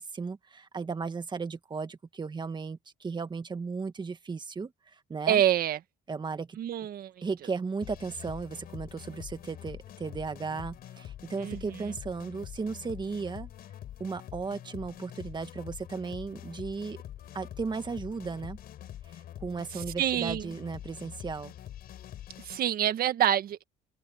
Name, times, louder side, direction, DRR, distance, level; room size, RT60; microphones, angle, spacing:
voice 1, 0.0-5.4 6.1-6.6 7.2-13.5 14.0-17.0 17.3-18.6 19.1-21.5, right 4 dB, 25° right, 1.7 m, -35 dB
voice 2, 5.3-5.8 6.6-7.1 11.4-11.6 20.0-20.5 22.4-23.6, right 11 dB, 60° right, 1.5 m, -26 dB
sound 1, 7.8-22.6, left 11 dB, 65° left, 4.7 m, -45 dB
open air
cardioid pair, 110°, 17 cm